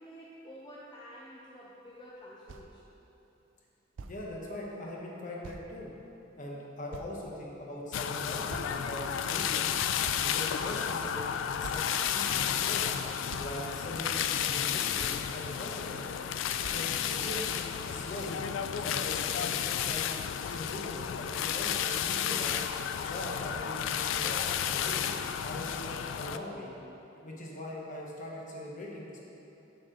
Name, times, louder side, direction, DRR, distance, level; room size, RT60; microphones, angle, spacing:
voice 1, 0.0-2.8, equal, 25° left, -5 dB, 0.6 m, -49 dB
sound 1, 2.2-2.3 2.5-2.7 3.5-3.6 4.0-4.2 5.4-5.7 6.3-6.4 6.9-7.5 8.5-9.1 9.6-9.7 10.0-10.7 11.2-11.3 11.6-11.9 12.8-12.9 13.3-13.5 14.5-14.6 15.0-15.3 16.3-16.4 16.6-16.8, right 3 dB, 80° right, 0.4 m, -45 dB
voice 2, 4.1-5.9 6.4-9.7 10.2-11.8 12.1-12.9 13.4-16.0 16.7-18.3 18.7-20.1 20.5-22.6 23.0-25.0 25.4-26.7 27.2-29.2, left 1 dB, 45° left, -3 dB, 1.1 m, -41 dB
sound 2, 7.9-26.4, left 9 dB, 80° left, 0.3 m, -32 dB
7.3 x 6.5 x 3.8 m, 2.9 s
head